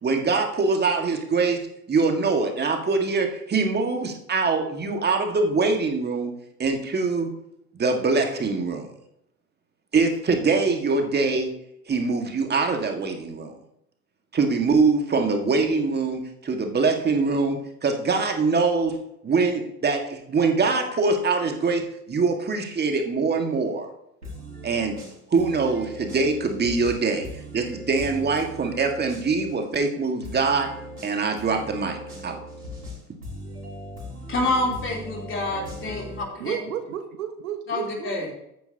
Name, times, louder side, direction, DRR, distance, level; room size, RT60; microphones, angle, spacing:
voice 1, 0.0-6.3 6.6-7.3 7.7-8.8 9.9-11.5 11.9-13.5 14.3-19.0 19.2-23.9 24.6-24.9 25.3-27.3 27.5-30.7 31.0-32.4, right 4 dB, 20° right, 1.8 m, -23 dB
sound 1, 24.2-29.6 30.2-36.2, equal, 90° right, 3.7 m, -39 dB
voice 2, 34.3-36.0 36.3-36.6 37.7-38.3, left 2 dB, 25° left, 3.4 m, -27 dB
voice 3, 36.4-38.3, right 9 dB, 70° right, 1.1 m, -32 dB
13.5 x 9.5 x 2.8 m
figure-of-eight pair, 75°, 44 cm